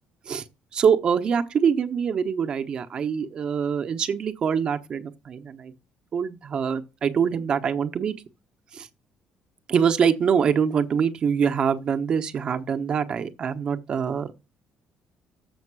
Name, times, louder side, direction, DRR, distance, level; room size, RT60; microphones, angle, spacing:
voice 1, 0.7-5.7 6.1-8.1 8.7-8.9 9.7-14.3, right 7 dB, 40° right, 0.9 m, -24 dB
7.3 x 6.5 x 6.0 m
cardioid pair, 160°, 3 cm